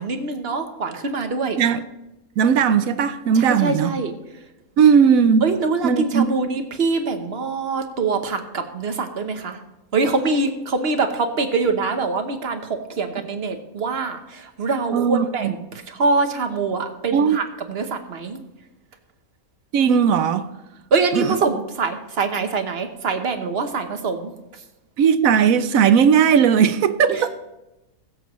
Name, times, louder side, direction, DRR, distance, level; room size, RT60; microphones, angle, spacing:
voice 1, 0.0-1.6 3.3-4.1 5.4-9.6 9.9-18.4 20.9-24.3 27.1-27.3, right 4 dB, 45° right, 1.2 m, -24 dB
voice 2, 2.4-3.9 4.8-5.5 5.8-6.3 14.9-15.5 17.1-17.4 19.7-20.5 21.1-21.3 25.0-27.3, right 7 dB, 70° right, 1.1 m, -17 dB
21.0 x 7.8 x 3.1 m
omnidirectional pair, 1.6 m